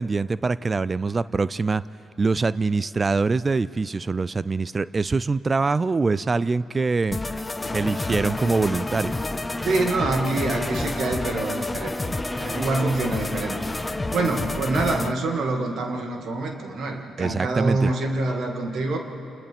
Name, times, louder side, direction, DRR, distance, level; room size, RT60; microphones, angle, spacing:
voice 1, 0.0-1.8 2.2-7.2 7.7-9.2 17.2-17.9, right 4 dB, 35° right, 18 dB, 0.4 m, -24 dB
sound 1, 7.1-15.1, left 2 dB, 25° left, 0.8 m, -29 dB
sound 2, 7.6-14.3, equal, 5° left, 1.4 m, -37 dB
voice 2, 9.6-13.6 14.1-19.0, right 3 dB, 60° right, 3 dB, 2.2 m, -26 dB
29.5 x 27.0 x 3.6 m, 2.9 s
hypercardioid pair, 40°, 0 cm